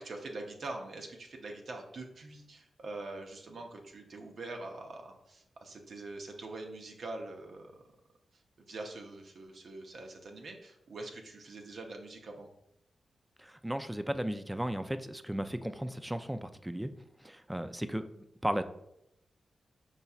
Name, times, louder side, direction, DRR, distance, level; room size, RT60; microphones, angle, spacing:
voice 1, 0.0-7.7 8.3-12.5, right 2 dB, 70° right, 2 dB, 0.7 m, -44 dB
voice 2, 13.4-16.9 17.2-18.6, equal, 10° right, 10 dB, 0.3 m, -35 dB
5.5 x 4.0 x 2.4 m, 0.80 s
cardioid pair, 80°, 0 cm